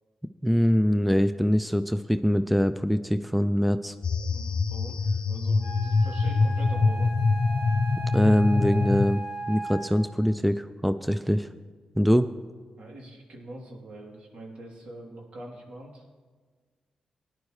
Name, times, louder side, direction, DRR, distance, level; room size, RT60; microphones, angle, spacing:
voice 1, 0.4-3.9 8.1-11.5 12.0-12.3, equal, ahead, 11 dB, 0.4 m, -23 dB
sound 1, 4.0-9.1, left 4 dB, 50° left, 0.5 m, -25 dB
voice 2, 4.3-7.1 12.8-16.0, right 1 dB, 65° right, -2 dB, 3.0 m, -43 dB
Wind instrument woodwind instrument, 5.6-10.2, right 2 dB, 40° right, 4.1 m, -37 dB
17.5 x 10.5 x 3.2 m, 1.5 s
cardioid pair, 70°, 2 cm